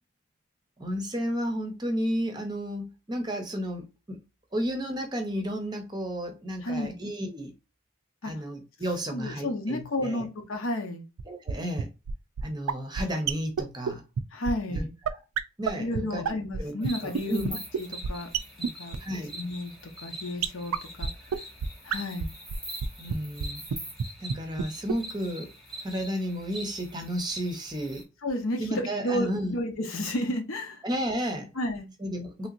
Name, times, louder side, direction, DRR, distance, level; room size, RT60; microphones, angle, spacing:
voice 1, 0.8-4.2 4.5-7.5 8.2-10.3 11.3-11.9 12.4-14.0 14.7-15.2 15.6-16.7 17.0-17.6 19.0-19.3 23.0-23.6 24.2-25.5 25.8-28.1 28.6-29.5 30.8-31.5 32.0-32.5, equal, 20° right, 0.6 m, -32 dB
voice 2, 6.6-7.0 8.2-8.3 9.1-11.1 14.3-14.9 15.8-18.3 18.6-19.0 19.3-19.7 20.0-21.4 21.8-22.3 28.2-30.8 31.6-31.9, left 1 dB, 70° left, 0.8 m, -32 dB
sound 1, 11.2-11.3 11.5-11.6 11.8-11.9 12.1-12.2 12.4-12.5 12.7-12.8 13.0-13.1 13.3-13.4 13.6-13.7 13.9-14.0 14.2-14.3 14.5-14.6 14.7-14.8 15.0-15.1 15.4-15.5 15.7-15.8 15.9-16.0 16.2-16.6 16.8-16.9 17.1-17.2 17.4-17.5 17.7-17.8 18.0-18.1 18.3-18.4 18.6-18.7 18.9-19.0 20.4-20.5 20.7-20.8 21.0-21.1 21.3-21.4 21.6-21.7 21.9-22.0 22.2-22.3 22.5-22.8 23.1-23.2 23.4-23.5 23.7-23.8 24.0-24.1 24.3-24.4 24.6-24.7 24.9-25.0, right 7 dB, 90° right, 0.4 m, -27 dB
sound 2, 16.8-28.0, right 1 dB, ahead, 1.0 m, -43 dB
3.3 x 2.8 x 2.4 m
head